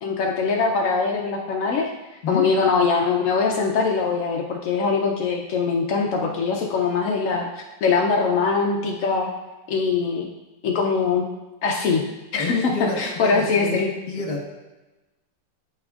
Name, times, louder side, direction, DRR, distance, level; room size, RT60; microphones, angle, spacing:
voice 1, 0.0-1.9 2.3-9.3 9.7-10.3 10.6-11.3 11.6-12.0 12.3-12.7 13.0-13.9, left 4 dB, 70° left, 0 dB, 0.7 m, -22 dB
voice 2, 12.4-13.8 14.1-14.4, left 4 dB, 35° left, -1 dB, 1.4 m, -28 dB
12.0 x 4.3 x 2.4 m, 1.1 s
omnidirectional pair, 2.0 m